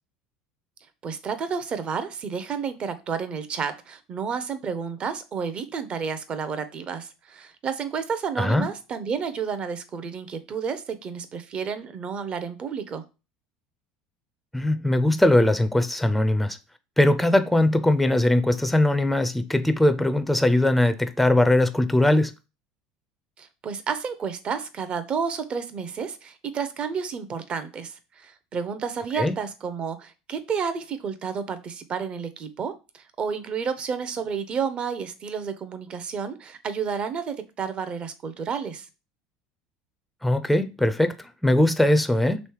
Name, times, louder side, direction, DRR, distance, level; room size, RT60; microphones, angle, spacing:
voice 1, 1.0-13.0 23.4-38.9, right 6 dB, 35° right, 0.6 m, -31 dB
voice 2, 8.4-8.7 14.5-16.6 17.0-22.3 29.2-29.4 40.2-41.2 41.4-42.4, left 1 dB, ahead, 0.4 m, -20 dB
3.2 x 3.1 x 4.6 m
supercardioid pair, 115°, 3 cm